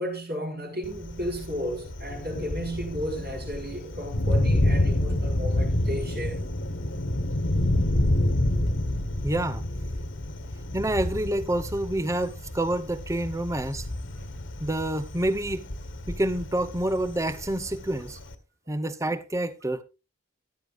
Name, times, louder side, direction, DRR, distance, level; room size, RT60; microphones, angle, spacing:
voice 1, 0.0-6.4, equal, 55° right, 4.5 m, -33 dB
Thunder, 0.8-18.4, left 1 dB, 70° left, 1.6 m, -28 dB
voice 2, 9.2-9.6 10.7-13.9 14.6-15.7 16.1-18.2 18.7-19.8, right 1 dB, 15° right, 0.8 m, -28 dB
14.0 x 12.5 x 2.6 m
head